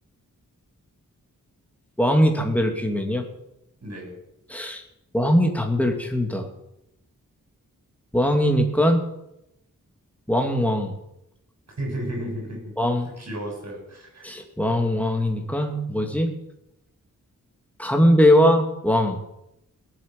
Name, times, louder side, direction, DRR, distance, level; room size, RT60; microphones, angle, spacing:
voice 1, 2.0-3.3 4.5-4.8 5.1-6.5 8.1-9.0 10.3-10.9 12.8-13.1 14.2-16.3 17.8-19.2, equal, 5° left, 3 dB, 2.5 m, -21 dB
voice 2, 3.8-4.2 11.8-12.7 13.2-14.2, right 1 dB, 55° right, 0 dB, 7.9 m, -33 dB
18.5 x 9.1 x 7.7 m, 0.84 s
wide cardioid pair, 125°, 32 cm